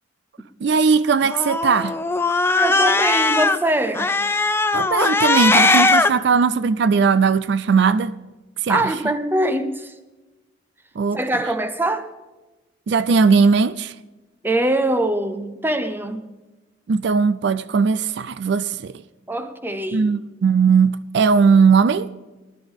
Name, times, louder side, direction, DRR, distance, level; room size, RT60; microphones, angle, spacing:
voice 1, 0.6-2.0 4.7-8.1 8.6-8.9 11.0-11.2 12.9-13.9 16.9-18.9 19.9-22.1, right 5 dB, 65° right, 0.4 m, -18 dB
Cat, 1.2-3.6 3.9-6.1, left 3 dB, 15° left, 0.4 m, -19 dB
voice 2, 2.5-4.1 8.7-9.9 11.1-12.1 14.4-16.3 19.3-20.1, right 1 dB, 10° right, 0.7 m, -23 dB
19.0 x 11.5 x 3.6 m
head